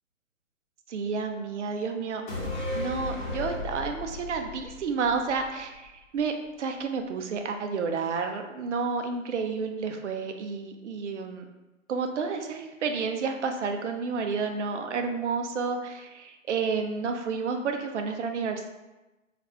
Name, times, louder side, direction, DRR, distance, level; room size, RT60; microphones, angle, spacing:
voice 1, 0.9-2.2 2.7-6.3 6.6-11.5 11.9-18.7, right 5 dB, 60° right, 5 dB, 0.5 m, -30 dB
sound 1, 2.3-5.9 6.2-6.3, left 2 dB, 35° left, 1.0 m, -35 dB
3.2 x 2.5 x 2.6 m, 1.1 s
hypercardioid pair, 150°, 41 cm